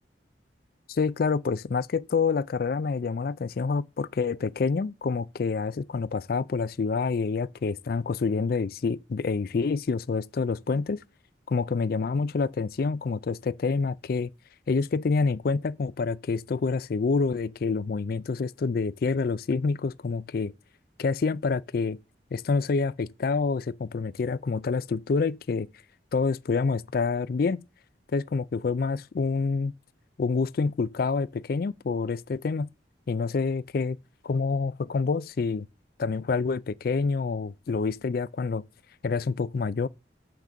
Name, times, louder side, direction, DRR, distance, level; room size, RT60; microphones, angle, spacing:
voice 1, 0.9-11.0 11.5-14.3 14.7-20.5 21.0-22.0 22.3-25.7 26.1-27.6 28.1-29.7 30.2-32.7 33.1-34.0 34.2-35.7 36.0-38.6 39.0-39.9, left 4 dB, 55° left, 0.4 m, -27 dB
7.3 x 5.9 x 6.7 m
head